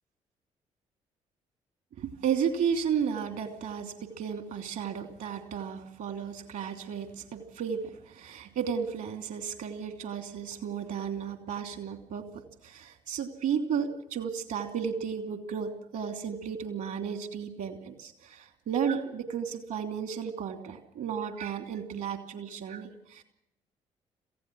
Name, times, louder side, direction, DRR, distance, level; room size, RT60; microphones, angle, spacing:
voice 1, 2.0-12.2 12.6-23.2, right 7 dB, 65° right, 6 dB, 3.0 m, -33 dB
27.0 x 16.0 x 6.2 m, 0.78 s
figure-of-eight pair, 45°, 16 cm